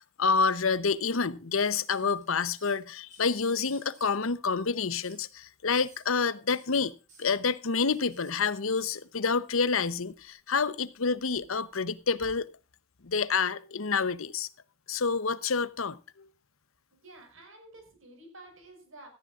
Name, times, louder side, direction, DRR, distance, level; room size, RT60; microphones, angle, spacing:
voice 1, 0.2-6.9 7.2-12.5 13.0-14.5 14.9-16.0, left 5 dB, 80° left, 0.8 m, -28 dB
sound 1, 1.6-2.8 3.1-4.2 5.0-5.3 5.7-6.0 6.5-8.3 8.7-9.0 10.1-10.6 11.0-12.4 13.7-13.8, right 3 dB, 35° right, 6.3 m, -57 dB
voice 2, 16.9-19.1, right 2 dB, 75° right, 5.8 m, -51 dB
17.5 x 13.5 x 2.5 m
head